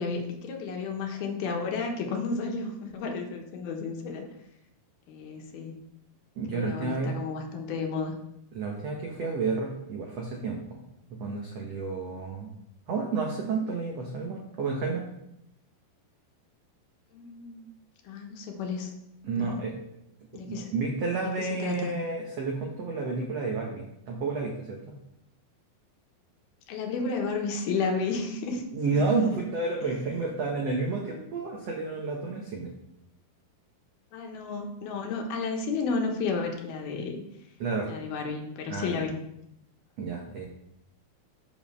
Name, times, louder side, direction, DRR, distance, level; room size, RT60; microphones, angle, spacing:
voice 1, 0.0-4.2 5.1-5.8 6.5-8.1 17.1-17.7 18.0-18.9 19.3-19.6 20.3-20.7 21.2-22.0 26.7-28.7 28.9-29.4 29.8-30.2 34.1-37.2 37.9-39.2, left 4 dB, 70° left, 2 dB, 2.9 m, -32 dB
voice 2, 6.4-7.2 8.5-10.6 11.2-12.5 12.9-15.0 19.2-19.7 20.5-24.9 28.7-32.7 37.6-37.9 38.7-39.0 40.0-40.4, right 3 dB, 85° right, 0 dB, 1.4 m, -30 dB
8.1 x 5.3 x 6.6 m, 0.79 s
omnidirectional pair, 4.7 m